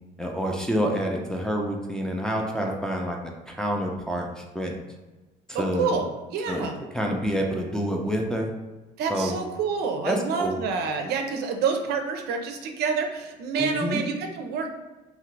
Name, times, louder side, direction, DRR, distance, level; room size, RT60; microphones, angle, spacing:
voice 1, 0.2-3.2 3.5-4.8 5.6-5.9 6.5-6.7 6.9-8.5 9.1-9.4 10.0-10.6 13.6-14.0, equal, 5° left, -1 dB, 0.4 m, -27 dB
voice 2, 5.5-6.1 6.3-6.7 9.0-14.7, right 5 dB, 75° right, 5 dB, 0.5 m, -28 dB
2.9 x 2.4 x 3.1 m, 1.2 s
cardioid pair, 110°, 17 cm